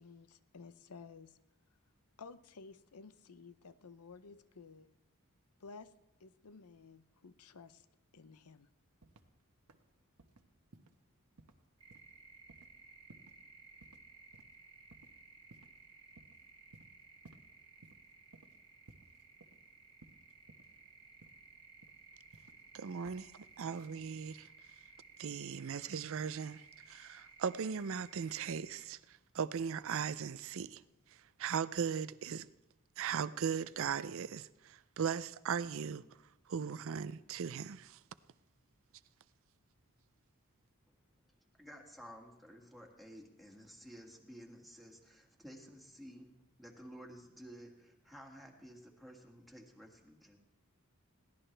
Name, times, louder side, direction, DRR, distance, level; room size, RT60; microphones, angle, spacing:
voice 1, 0.0-1.4 2.2-4.9 5.6-5.9 6.2-7.9 8.1-8.7, left 4 dB, 90° left, 0.7 m, -54 dB
sound 1, 9.0-9.4 9.7-9.9 10.2-10.4 10.7-11.0 11.4-11.6 11.9-12.2 12.5-12.7 13.1-13.4 13.8-14.0 14.3-14.5 14.9-15.1 15.5-15.8 16.2-16.4 16.7-17.5 17.8-18.0 18.3-18.6 18.9-19.7 20.0-20.8 21.2-21.5 21.8-22.7 23.0-23.2 23.5-23.9, right 2 dB, 85° right, 1.2 m, -60 dB
sound 2, 11.8-28.8, right 4 dB, 25° right, 1.2 m, -59 dB
voice 2, 22.7-23.3 23.6-24.5 25.2-30.8 31.4-32.5 33.0-36.0 36.5-38.0, right 7 dB, 65° right, 0.5 m, -38 dB
voice 3, 41.6-46.3 46.6-50.4, equal, ahead, 2.0 m, -53 dB
21.5 x 16.5 x 3.4 m
head